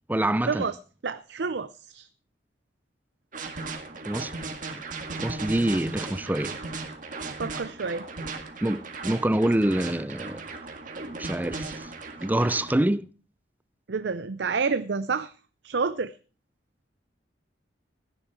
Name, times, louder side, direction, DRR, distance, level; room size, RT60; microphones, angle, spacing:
voice 1, 0.1-0.7 4.1-4.3 4.7-4.8 5.2-6.6 8.6-10.4 11.2-11.9 12.2-13.1, right 1 dB, 10° right, 0.5 m, -26 dB
voice 2, 1.0-2.1 7.4-8.1 13.9-15.3 15.6-16.1, right 5 dB, 70° right, 0.6 m, -29 dB
sound 1, 3.3-12.7, right 3 dB, 45° right, 1.9 m, -37 dB
15.5 x 10.0 x 4.7 m
head